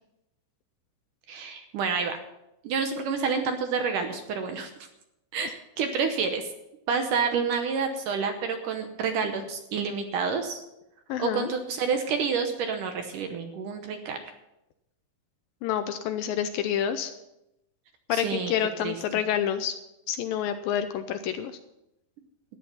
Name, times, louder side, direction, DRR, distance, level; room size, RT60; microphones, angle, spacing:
voice 1, 1.3-2.2 2.6-4.7 5.3-6.5 6.9-10.6 11.2-14.2 18.1-18.5 18.8-19.0, right 5 dB, 70° right, 6 dB, 2.2 m, -28 dB
voice 2, 11.1-11.5 15.6-17.1 18.1-19.8 20.1-21.6, left 9 dB, 80° left, 9 dB, 2.2 m, -28 dB
13.5 x 10.0 x 5.7 m, 0.89 s
omnidirectional pair, 4.5 m